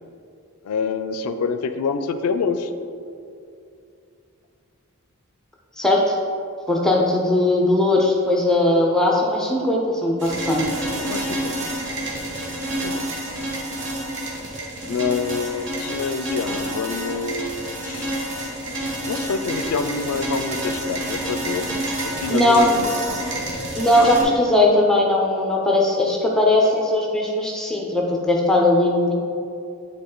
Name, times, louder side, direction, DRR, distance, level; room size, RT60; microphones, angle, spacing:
voice 1, 0.6-2.7 11.0-11.8 12.5-13.2 14.9-18.1 19.0-23.2 23.9-24.4 24.9-25.0, left 5 dB, 80° left, 9 dB, 0.4 m, -27 dB
voice 2, 5.8-6.2 6.7-10.6 22.3-22.6 23.8-29.1, left 1 dB, 5° left, -2 dB, 0.5 m, -19 dB
sound 1, 10.2-24.2, right 1 dB, 55° right, 1.3 m, -29 dB
9.0 x 3.8 x 3.8 m, 2.5 s
head